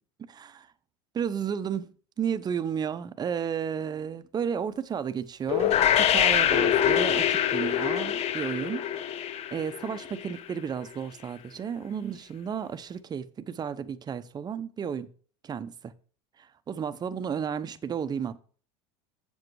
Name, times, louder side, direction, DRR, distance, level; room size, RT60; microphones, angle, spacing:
voice 1, 0.3-0.7 1.1-1.9 2.2-8.8 9.5-15.1 15.4-15.9 16.7-18.4, right 7 dB, 25° right, 0.8 m, -32 dB
sound 1, 5.5-10.4, left 10 dB, 45° left, 0.7 m, -25 dB
7.7 x 7.1 x 4.7 m
supercardioid pair, 105°, 15 cm